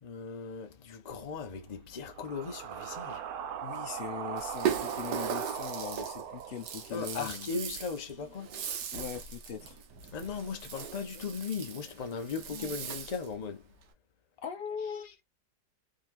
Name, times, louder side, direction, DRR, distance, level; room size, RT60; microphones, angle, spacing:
voice 1, 0.0-3.2 6.9-8.6 10.1-13.7, left 5 dB, 85° left, 0.3 m, -38 dB
sound 1, 1.1-7.2, right 8 dB, 70° right, 1.0 m, -40 dB
voice 2, 3.6-7.6 8.9-9.8 12.5-12.8 14.4-15.1, left 7 dB, 45° left, 0.8 m, -40 dB
Rattle (instrument), 4.4-13.3, right 8 dB, 85° right, 1.4 m, -38 dB
3.9 x 2.8 x 2.5 m
omnidirectional pair, 1.8 m